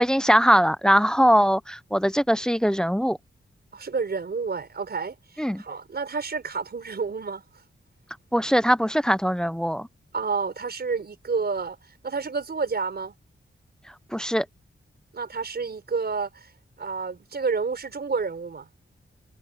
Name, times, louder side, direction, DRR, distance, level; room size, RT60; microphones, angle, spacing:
voice 1, 0.0-3.2 5.4-5.6 8.3-9.9 14.1-14.5, equal, 5° left, 0.4 m, -21 dB
voice 2, 3.7-7.4 10.1-11.8 12.0-13.1 15.1-16.5 16.8-18.7, right 5 dB, 50° right, 5.2 m, -29 dB
wide cardioid pair, 170°, 21 cm